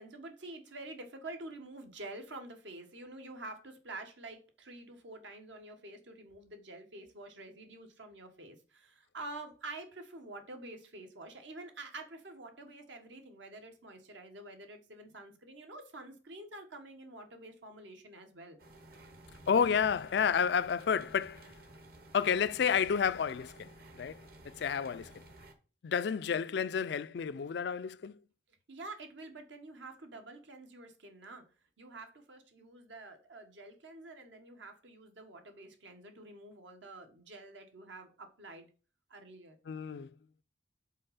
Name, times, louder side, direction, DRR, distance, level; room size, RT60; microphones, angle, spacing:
voice 1, 0.0-18.6 28.7-31.4 31.8-38.7 39.1-39.6, right 2 dB, 70° right, 1.3 m, -48 dB
sound 1, 18.6-25.5, right 1 dB, 50° right, 1.1 m, -54 dB
voice 2, 19.5-21.4 22.1-23.7 24.0-24.2 24.6-25.1 25.8-28.1 39.7-40.1, left 7 dB, 60° left, 0.3 m, -30 dB
5.5 x 4.2 x 5.6 m
head